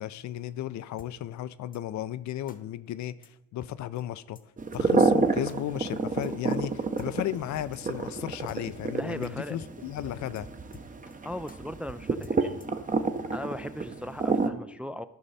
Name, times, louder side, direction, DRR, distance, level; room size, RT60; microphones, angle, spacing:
voice 1, 0.0-4.4 4.7-10.5, left 12 dB, 70° left, 0.5 m, -35 dB
sound 1, 1.0-1.1 1.7-1.8 2.5-2.6 3.2-3.3 3.6-3.7 4.0-4.1 4.4-4.5 4.7-4.9 5.5-5.6 6.2-6.3 7.0-7.1 7.7-7.8 8.1-8.2 8.5-8.6 8.9-9.0 9.2-9.3 9.6-9.7 10.0-10.1 10.4-10.5 10.7-11.2 11.5-11.6 12.2-12.8, left 5 dB, 30° left, 0.9 m, -49 dB
sound 2, 4.6-14.5, right 4 dB, 25° right, 0.8 m, -29 dB
voice 2, 8.9-9.6 11.2-12.6 13.3-15.1, left 1 dB, 5° right, 0.3 m, -38 dB
13.0 x 5.5 x 4.1 m
cardioid pair, 90°, 30 cm